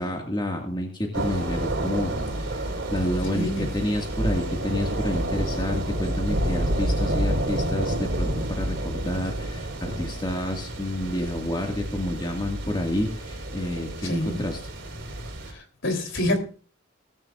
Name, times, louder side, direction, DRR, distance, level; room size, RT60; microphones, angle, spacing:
voice 1, 0.0-14.6, left 1 dB, 25° left, 2.0 m, -29 dB
sound 1, 1.1-15.5, right 1 dB, 60° right, 4.6 m, -29 dB
voice 2, 3.3-3.7 14.0-14.4 15.5-16.4, left 1 dB, 65° left, 3.6 m, -27 dB
18.0 x 14.0 x 2.5 m
head